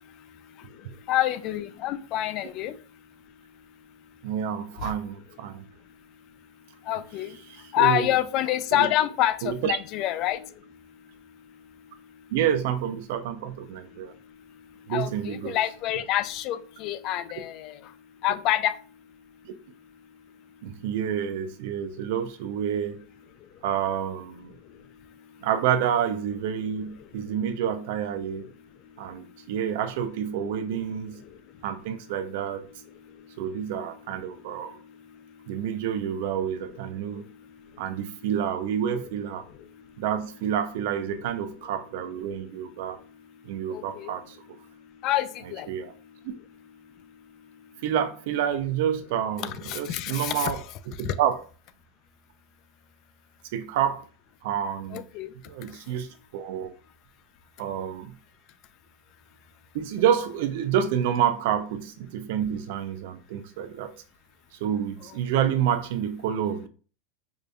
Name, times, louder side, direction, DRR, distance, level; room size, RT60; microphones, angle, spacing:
voice 1, 0.2-2.8 4.8-4.9 6.8-12.3 13.9-18.0 18.2-18.8 23.4-23.5 24.5-25.5 26.8-26.9 27.3-27.4 28.8-29.5 31.2-31.6 32.9-33.4 34.3-35.6 37.0-37.8 39.4-40.0 42.8-44.1 44.6-45.8 46.8-47.8 49.4-50.5 51.0-51.1 54.9-55.3 55.7-56.0 65.1-65.2, left 13 dB, 40° left, 0.3 m, -30 dB
voice 2, 4.2-5.6 7.8-8.1 8.7-8.9 9.4-9.8 12.3-14.1 14.9-15.6 19.4-19.5 20.6-23.1 23.6-24.5 25.4-28.5 29.0-31.2 31.6-32.7 33.4-34.8 35.5-37.2 37.8-39.4 40.0-43.0 43.4-44.4 45.7-45.9 46.2-46.3 47.8-50.6 51.0-51.4 53.5-54.1 54.4-55.1 55.5-56.7 57.6-58.2 59.7-63.9 64.6-66.7, right 9 dB, 65° right, 0.5 m, -28 dB
4.8 x 2.6 x 2.3 m
supercardioid pair, 150°, 0 cm